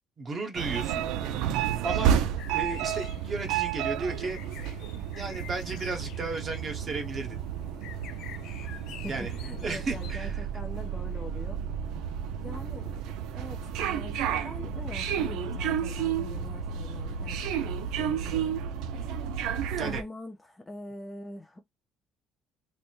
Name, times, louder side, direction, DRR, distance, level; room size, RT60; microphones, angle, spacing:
voice 1, 0.2-1.0 1.8-2.2 2.5-4.4 5.1-7.4 9.1-9.3 9.6-10.4 19.8-20.0, right 3 dB, 35° right, 1.0 m, -34 dB
sound 1, 0.5-20.0, right 8 dB, 85° right, 0.5 m, -31 dB
sound 2, 2.4-10.1, left 10 dB, 60° left, 0.5 m, -48 dB
voice 2, 9.0-11.6 12.4-18.6 19.8-21.6, left 1 dB, 10° left, 0.5 m, -43 dB
3.4 x 2.1 x 4.3 m
cardioid pair, 145°, 0 cm